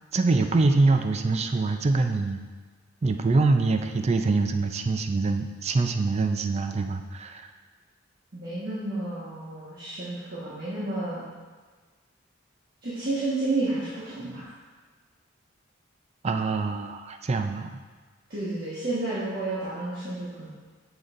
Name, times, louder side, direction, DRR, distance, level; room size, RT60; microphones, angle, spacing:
voice 1, 0.1-2.4 3.0-7.5 16.2-17.8, right 3 dB, 35° right, 6 dB, 0.4 m, -24 dB
voice 2, 8.3-11.3 12.8-14.4 18.3-20.5, right 2 dB, 50° right, -10 dB, 1.4 m, -31 dB
7.0 x 6.3 x 2.6 m, 1.4 s
head